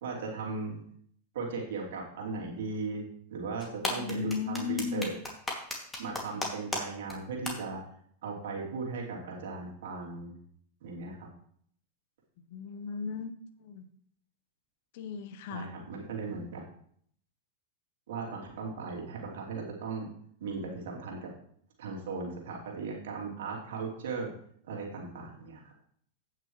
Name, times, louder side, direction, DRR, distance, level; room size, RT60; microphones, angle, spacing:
voice 1, 0.0-0.8 1.3-3.0 3.3-5.1 6.0-7.8 8.2-10.3 10.8-11.3 15.5-16.6 18.1-20.1 20.4-21.3 21.8-24.3 24.7-25.6, right 4 dB, 70° right, -1 dB, 2.9 m, -37 dB
sound 1, 3.6-6.8 7.1-7.2 7.5-7.6, left 2 dB, 10° left, 2.4 m, -33 dB
voice 2, 3.8-5.1 12.5-13.3 13.6-13.9 14.9-15.7, left 6 dB, 60° left, 10 dB, 0.9 m, -35 dB
16.5 x 6.0 x 3.2 m, 0.63 s
hypercardioid pair, 100°, 0 cm